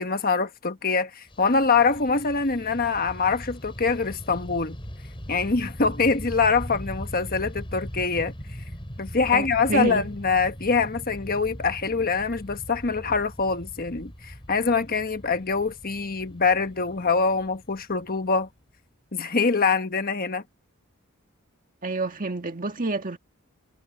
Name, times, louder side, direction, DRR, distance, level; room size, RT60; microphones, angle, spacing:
voice 1, 0.0-4.8 5.3-8.3 9.0-18.5 19.1-20.4, left 4 dB, 45° left, 1.3 m, -24 dB
Fixed-wing aircraft airplane, 1.3-18.7, equal, 25° left, 4.7 m, -40 dB
voice 2, 9.3-10.1 21.8-23.2, right 2 dB, 40° right, 1.9 m, -28 dB
head